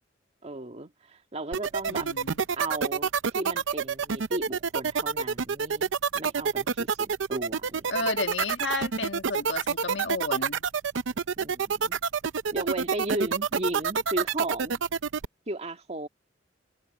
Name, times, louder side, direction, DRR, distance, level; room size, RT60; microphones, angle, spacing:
voice 1, 0.4-2.1 2.6-7.9 11.4-12.0 12.5-14.8 15.5-16.1, right 2 dB, 35° right, 2.0 m, -35 dB
sound 1, 1.5-15.3, right 6 dB, 90° right, 0.6 m, -27 dB
voice 2, 1.9-2.5 7.9-10.6, left 3 dB, 70° left, 1.6 m, -32 dB
head